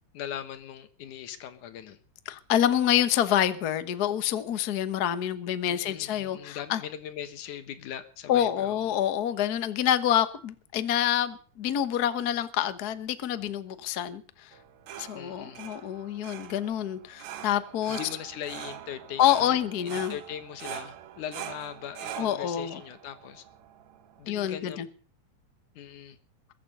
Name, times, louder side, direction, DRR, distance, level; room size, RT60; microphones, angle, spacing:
voice 1, 0.1-2.0 5.7-9.0 15.2-15.6 17.9-23.4 24.2-24.8 25.8-26.2, left 10 dB, 85° left, 2.8 m, -40 dB
voice 2, 2.3-6.8 8.3-14.5 15.0-18.0 19.2-20.1 22.2-22.8 24.3-24.9, left 10 dB, 60° left, 1.0 m, -27 dB
sound 1, 14.5-24.2, right 11 dB, 70° right, 2.2 m, -43 dB
22.0 x 8.3 x 6.8 m
omnidirectional pair, 3.4 m